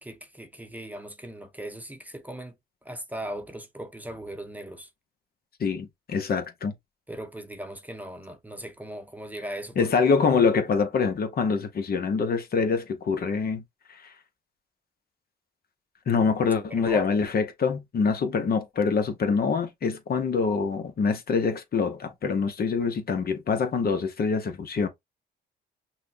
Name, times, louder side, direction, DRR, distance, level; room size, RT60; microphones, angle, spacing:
voice 1, 0.0-2.5 2.8-4.9 7.1-10.1 16.7-17.1, right 1 dB, 10° right, 0.9 m, -38 dB
voice 2, 5.6-6.7 9.8-13.6 13.9-14.0 16.1-24.9, left 5 dB, 50° left, 1.0 m, -25 dB
5.9 x 2.3 x 2.7 m
cardioid pair, 90°, 20 cm